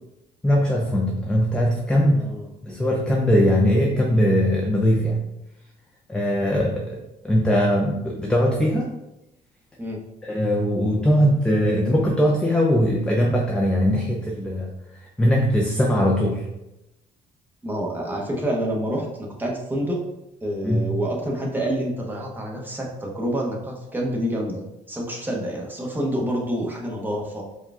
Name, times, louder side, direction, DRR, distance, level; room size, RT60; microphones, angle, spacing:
voice 1, 0.4-2.3 2.6-5.2 6.1-7.0 7.2-8.9 10.2-14.7 15.2-16.4 20.6-21.0, equal, 5° left, -2 dB, 0.5 m, -20 dB
voice 2, 2.1-2.4 9.8-10.0 17.6-20.0 20.4-27.4, equal, 10° right, -1 dB, 0.9 m, -28 dB
4.5 x 2.3 x 3.5 m, 0.90 s
cardioid pair, 110°, 17 cm